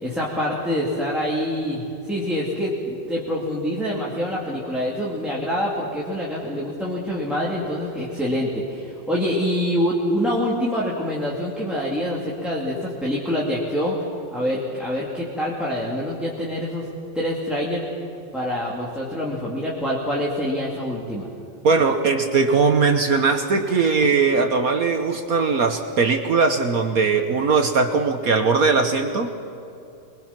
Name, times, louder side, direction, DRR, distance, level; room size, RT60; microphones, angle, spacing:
voice 1, 0.0-14.0 14.3-16.8 17.1-17.8 18.3-21.3, equal, ahead, -5 dB, 2.6 m, -25 dB
voice 2, 21.6-29.3, right 4 dB, 55° right, 6 dB, 1.4 m, -20 dB
25.0 x 22.5 x 6.0 m, 2.6 s
omnidirectional pair, 2.0 m